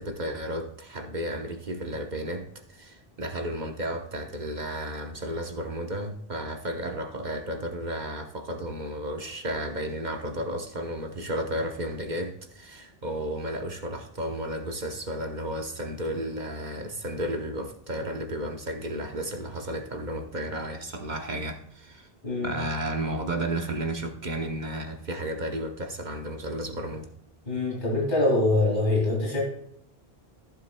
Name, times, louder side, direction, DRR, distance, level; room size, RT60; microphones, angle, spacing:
voice 1, 0.0-22.1 22.4-27.1, right 1 dB, 45° right, 4 dB, 1.1 m, -33 dB
voice 2, 22.2-22.6 27.5-29.4, left 2 dB, 50° left, -4 dB, 2.7 m, -24 dB
15.0 x 7.5 x 2.2 m, 0.66 s
omnidirectional pair, 1.1 m